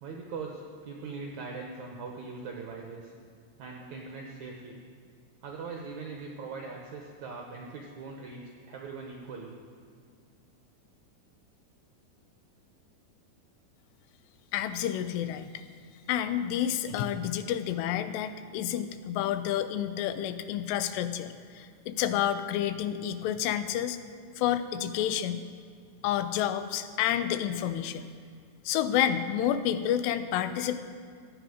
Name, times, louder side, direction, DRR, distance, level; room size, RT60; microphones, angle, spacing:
voice 1, 0.0-3.1 3.6-4.8 5.4-8.4 8.7-9.6, right 4 dB, 75° right, 0 dB, 1.7 m, -41 dB
voice 2, 14.5-15.6 16.1-24.0 24.4-25.4 26.0-28.1 28.7-30.8, left 10 dB, 85° left, 11 dB, 2.8 m, -29 dB
16.5 x 10.0 x 5.0 m, 2.1 s
omnidirectional pair, 4.8 m